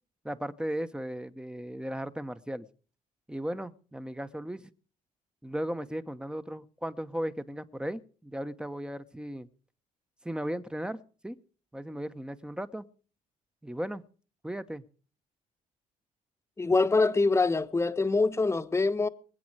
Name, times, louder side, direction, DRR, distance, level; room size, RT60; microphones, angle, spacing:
voice 1, 0.2-2.7 3.3-4.6 5.4-9.5 10.2-11.4 11.7-12.8 13.6-14.0 14.4-14.8, equal, 5° right, 1.0 m, -36 dB
voice 2, 16.6-19.1, left 3 dB, 20° left, 1.1 m, -24 dB
24.0 x 8.6 x 4.8 m
cardioid pair, 95°, 15 cm